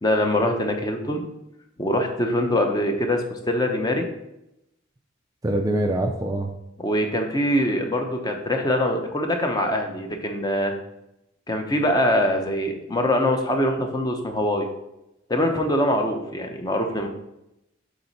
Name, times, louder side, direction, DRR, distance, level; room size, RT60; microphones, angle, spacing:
voice 1, 0.0-1.2 1.8-4.1 6.8-10.7 11.5-14.7 15.3-17.1, left 1 dB, 20° left, 4 dB, 0.8 m, -23 dB
voice 2, 5.4-6.5, right 1 dB, 20° right, 4 dB, 0.4 m, -24 dB
7.7 x 3.9 x 4.2 m, 0.87 s
head